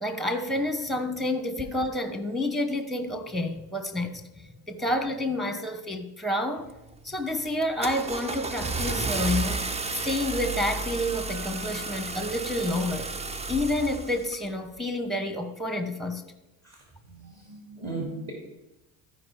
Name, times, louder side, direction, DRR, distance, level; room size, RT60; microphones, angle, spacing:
voice 1, 0.0-4.2 4.7-6.7 7.0-9.6 10.0-13.1 13.5-16.2, left 1 dB, ahead, 7 dB, 1.0 m, -29 dB
Car / Engine starting, 6.7-7.0 7.5-14.4, right 3 dB, 15° right, 0.4 m, -32 dB
voice 2, 17.1-18.3, right 3 dB, 35° right, -2 dB, 2.7 m, -36 dB
13.0 x 4.9 x 4.9 m, 0.96 s
supercardioid pair, 95°, 44 cm